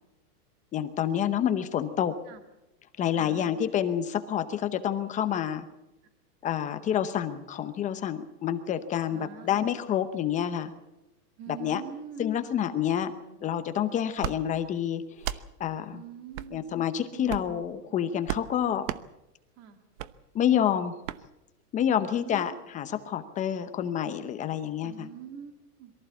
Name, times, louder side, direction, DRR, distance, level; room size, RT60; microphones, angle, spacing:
voice 1, 0.7-2.2 3.0-5.7 6.4-10.7 11.6-11.8 12.2-13.1 13.4-15.9 16.5-18.9 20.3-20.9 21.7-25.1, left 9 dB, 15° left, 10 dB, 0.8 m, -28 dB
voice 2, 3.1-3.6 9.1-9.7 11.4-12.3 13.1-13.6 15.9-16.7 17.1-17.4 17.8-18.0 19.6-19.8 22.1-22.6 24.8-25.9, right 8 dB, 30° right, 6 dB, 2.2 m, -45 dB
sound 1, 14.2-14.4 15.2-15.4 16.3-16.5 17.2-17.6 18.3-18.5 18.8-19.0 20.0-20.1 21.0-21.2, right 13 dB, 60° right, 1.1 m, -33 dB
23.5 x 15.0 x 8.3 m, 0.94 s
supercardioid pair, 155°, 46 cm